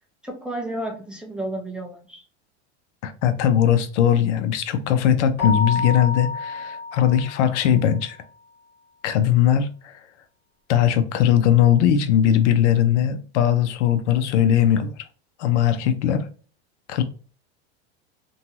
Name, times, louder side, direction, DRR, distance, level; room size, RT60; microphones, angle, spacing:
voice 1, 0.2-2.2, right 1 dB, 5° right, 0.4 m, -32 dB
voice 2, 3.0-8.2 9.0-9.9 10.7-14.9 15.4-16.3 16.9-17.0, left 10 dB, 80° left, 0.6 m, -19 dB
Keyboard (musical), 5.4-7.8, left 4 dB, 30° left, 1.2 m, -29 dB
2.6 x 2.3 x 2.9 m
supercardioid pair, 110°, 35 cm